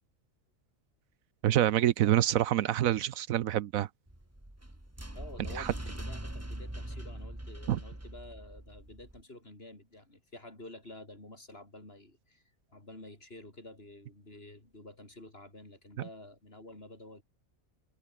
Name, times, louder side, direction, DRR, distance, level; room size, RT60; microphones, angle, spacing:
voice 1, 1.4-3.9 5.6-5.7 7.7-7.8, right 12 dB, 75° right, 1.0 m, -26 dB
sound 1, 4.1-9.2, right 1 dB, 10° right, 2.4 m, -42 dB
voice 2, 5.1-12.4 12.7-17.2, left 2 dB, 40° left, 5.4 m, -50 dB
omnidirectional pair, 1.5 m